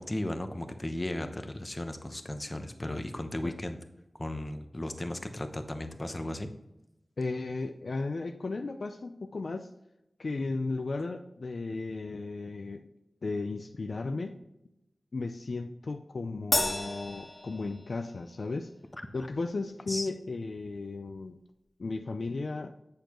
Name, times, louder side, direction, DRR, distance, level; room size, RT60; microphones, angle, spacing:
voice 1, 0.0-3.8 4.2-6.5 19.9-20.1, left 1 dB, 30° left, 7 dB, 1.0 m, -35 dB
voice 2, 7.2-9.7 10.2-12.8 13.2-14.4 15.1-18.7 19.1-21.4 21.8-22.7, left 3 dB, 75° left, 6 dB, 0.5 m, -35 dB
Crash cymbal, 16.5-18.2, left 2 dB, 55° left, 1.7 m, -31 dB
7.9 x 6.6 x 3.0 m, 0.89 s
wide cardioid pair, 50°, 0 cm